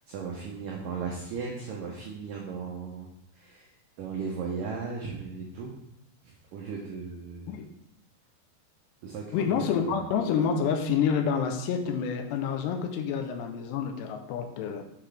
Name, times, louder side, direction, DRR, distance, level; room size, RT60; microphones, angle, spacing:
voice 1, 0.1-3.1 3.3-5.8 6.2-7.5 9.0-9.9, right 5 dB, 80° right, -1 dB, 1.9 m, -37 dB
voice 2, 9.3-14.8, left 7 dB, 80° left, 5 dB, 2.7 m, -28 dB
7.7 x 5.9 x 3.3 m, 0.81 s
omnidirectional pair, 5.0 m